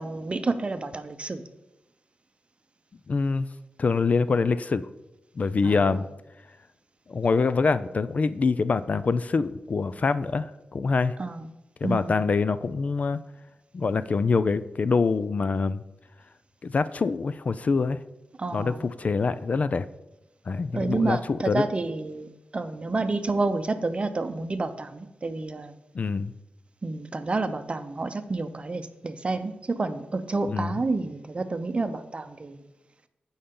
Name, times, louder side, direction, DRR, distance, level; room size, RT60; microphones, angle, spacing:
voice 1, 0.0-1.4 5.6-5.8 11.2-11.5 11.8-12.2 18.4-18.8 20.7-25.7 26.8-32.6, right 3 dB, 35° right, 10 dB, 0.7 m, -29 dB
voice 2, 3.1-3.5 3.8-4.9 5.4-6.1 7.1-11.1 11.8-13.2 13.7-15.8 16.6-18.0 18.5-19.9 20.5-21.6 25.9-26.3 30.4-30.8, left 4 dB, 45° left, 14 dB, 0.4 m, -25 dB
15.5 x 5.5 x 3.8 m, 0.94 s
wide cardioid pair, 95°, 3 cm